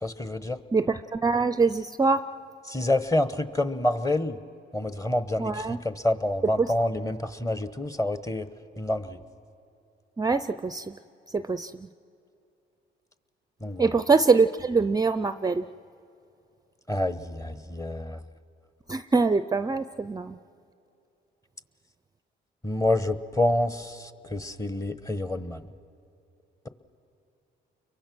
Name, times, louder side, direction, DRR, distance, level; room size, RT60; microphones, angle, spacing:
voice 1, 0.0-0.6 2.7-4.4 4.7-8.5 8.8-9.2 13.6-14.0 16.9-18.2 22.6-25.6, left 1 dB, 15° left, 12 dB, 1.1 m, -28 dB
voice 2, 0.7-2.2 5.4-5.8 6.6-6.7 10.2-10.9 11.3-11.7 13.8-15.7 18.9-20.4, right 4 dB, 20° right, 12 dB, 0.5 m, -24 dB
30.0 x 23.0 x 6.2 m, 2.7 s
cardioid pair, 90°, 20 cm